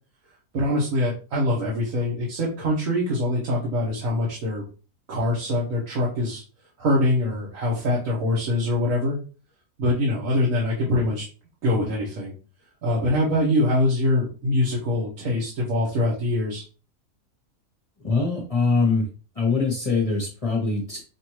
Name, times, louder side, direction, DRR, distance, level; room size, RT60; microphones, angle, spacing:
voice 1, 0.5-4.6 5.1-6.4 6.8-9.2 9.8-11.2 11.6-12.3 12.8-16.6, left 1 dB, 65° right, -5 dB, 1.5 m, -23 dB
voice 2, 18.0-19.1 19.4-21.0, left 4 dB, 30° left, -1 dB, 0.9 m, -23 dB
5.4 x 2.6 x 3.1 m, 0.36 s
omnidirectional pair, 1.5 m